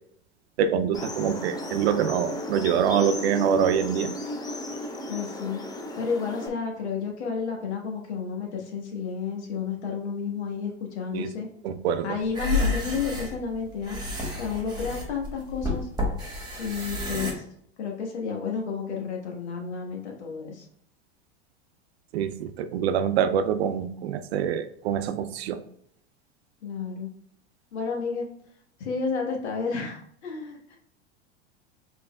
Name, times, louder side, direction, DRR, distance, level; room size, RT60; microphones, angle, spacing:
voice 1, 0.6-4.1 11.1-11.3 11.6-12.1 22.1-25.6, right 8 dB, 65° right, 11 dB, 0.6 m, -25 dB
sound 1, 0.9-6.5, left 1 dB, 10° left, 0.5 m, -34 dB
voice 2, 5.1-5.6 6.0-11.5 12.0-14.0 14.4-15.9 16.6-17.4 17.8-20.6 26.6-27.1 27.7-28.3 28.8-30.8, left 5 dB, 75° left, 1 dB, 1.4 m, -31 dB
sound 2, 12.3-17.3, left 2 dB, 10° right, 1.7 m, -30 dB
5.3 x 3.9 x 2.2 m, 0.66 s
hypercardioid pair, 95°, 34 cm